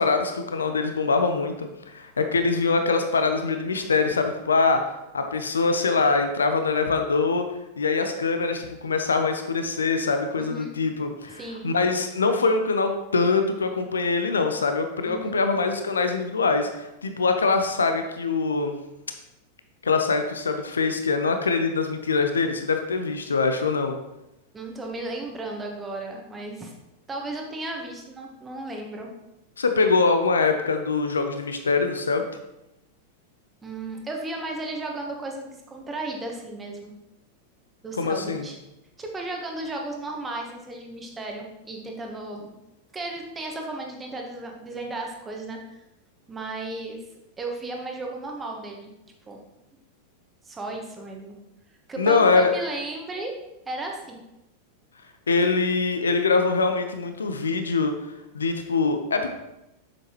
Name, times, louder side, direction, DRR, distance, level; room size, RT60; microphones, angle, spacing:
voice 1, 0.0-4.8 5.1-7.4 7.8-18.8 19.8-23.9 29.6-32.3 38.0-38.5 52.0-52.5 55.3-57.9 58.3-59.3, left 4 dB, 70° left, 7 dB, 0.7 m, -23 dB
voice 2, 10.4-10.7 11.3-11.7 15.0-15.4 24.5-26.7 27.1-29.1 33.6-36.9 37.8-38.6 39.0-42.5 42.9-45.8 46.3-47.0 47.4-48.9 49.3-49.4 50.4-51.3 51.9-53.3 53.6-54.2, right 2 dB, 15° right, 1 dB, 1.3 m, -34 dB
7.4 x 6.9 x 3.1 m, 0.91 s
figure-of-eight pair, 90°, 0 cm